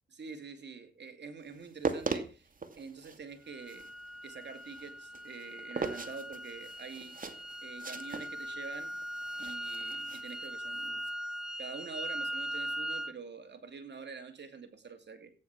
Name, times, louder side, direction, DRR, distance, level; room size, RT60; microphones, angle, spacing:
voice 1, 0.1-2.5 2.8-3.9 4.2-7.3 7.6-8.9 9.4-11.1 11.6-15.3, right 5 dB, 55° right, 7 dB, 2.7 m, -46 dB
sound 1, 1.6-11.1, right 4 dB, 40° right, 2.3 m, -40 dB
sound 2, 3.5-13.1, equal, ahead, 0.7 m, -40 dB
15.5 x 9.9 x 6.0 m, 0.37 s
cardioid pair, 65°, 21 cm